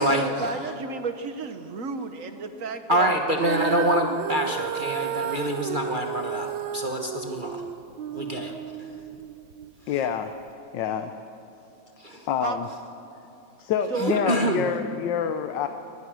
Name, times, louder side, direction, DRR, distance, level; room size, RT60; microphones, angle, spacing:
voice 1, 0.0-3.2 8.3-8.6 12.4-12.6 13.9-14.1, right 4 dB, 50° right, 9 dB, 1.3 m, -32 dB
voice 2, 2.9-6.5 6.7-7.6 8.1-8.5 12.0-12.3 13.9-14.7, right 1 dB, 30° right, 2 dB, 1.1 m, -25 dB
Female singing, 3.4-9.7 10.4-10.5, right 8 dB, 75° right, 1.5 m, -33 dB
voice 3, 9.9-10.3 10.7-11.1 12.3-12.7 13.6-15.7, left 8 dB, 70° left, 8 dB, 1.4 m, -27 dB
24.0 x 19.5 x 6.3 m, 2.8 s
omnidirectional pair, 2.1 m